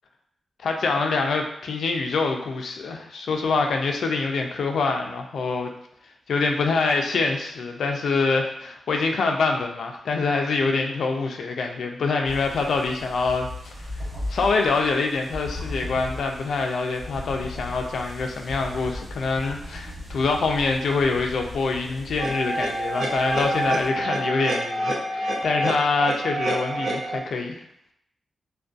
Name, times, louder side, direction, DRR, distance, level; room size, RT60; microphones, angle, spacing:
voice 1, 0.6-5.7 6.3-13.7 14.3-27.6, left 4 dB, 75° left, 3 dB, 0.3 m, -25 dB
sound 1, 12.3-23.9, left 1 dB, 80° right, 1.3 m, -38 dB
sound 2, 22.2-27.2, right 1 dB, 55° right, 0.5 m, -27 dB
2.5 x 2.2 x 2.3 m, 0.74 s
wide cardioid pair, 165°, 0 cm